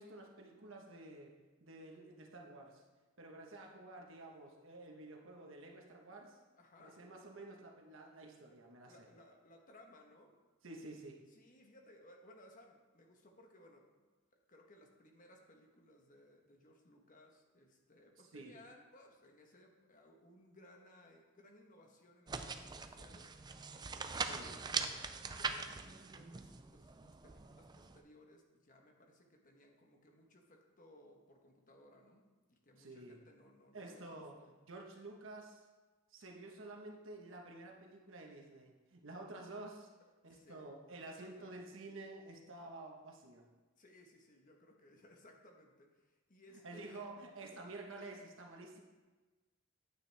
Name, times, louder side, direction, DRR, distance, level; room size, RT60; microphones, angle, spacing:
voice 1, 0.0-1.3 1.6-2.8 3.2-6.4 6.8-8.9 10.6-11.2 18.2-18.5 24.3-24.5 32.8-33.2 33.7-35.6 36.1-39.9 40.2-43.5 46.6-48.8, right 2 dB, 65° right, 1 dB, 1.2 m, -51 dB
voice 2, 6.6-7.0 8.9-10.3 11.3-14.1 14.5-34.5 40.2-40.7 41.0-41.5 43.8-47.1, left 1 dB, 40° left, 2 dB, 1.2 m, -62 dB
sound 1, 22.3-28.0, right 5 dB, 20° right, 0.4 m, -42 dB
9.0 x 9.0 x 3.4 m, 1.3 s
head